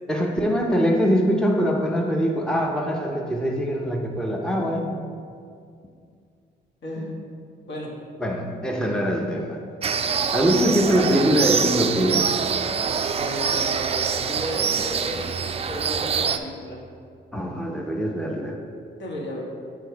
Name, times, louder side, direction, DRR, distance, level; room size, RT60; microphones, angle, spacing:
voice 1, 0.1-5.0 8.2-9.6 10.3-12.3 17.3-18.6, equal, 5° left, 1 dB, 0.7 m, -23 dB
voice 2, 6.8-7.2 7.6-7.9 13.1-16.8 19.0-19.4, equal, 65° left, -3 dB, 1.7 m, -34 dB
sound 1, 9.8-16.4, right 6 dB, 30° right, 0.4 m, -25 dB
6.7 x 4.5 x 4.6 m, 2.3 s
cardioid pair, 90°, 20 cm